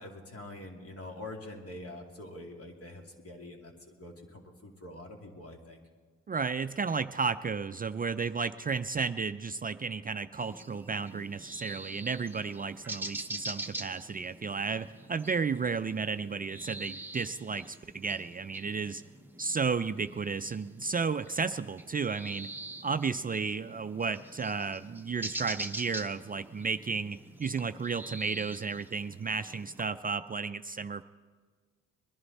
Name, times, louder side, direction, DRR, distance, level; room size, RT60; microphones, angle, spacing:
voice 1, 0.0-5.8, left 1 dB, 45° left, 1 dB, 2.6 m, -45 dB
voice 2, 6.3-19.0 19.4-22.5 22.8-31.0, right 5 dB, 25° right, 11 dB, 0.4 m, -33 dB
sound 1, 10.4-29.8, right 2 dB, 5° right, 0.9 m, -45 dB
21.5 x 11.0 x 4.2 m, 1.5 s
supercardioid pair, 65°, 33 cm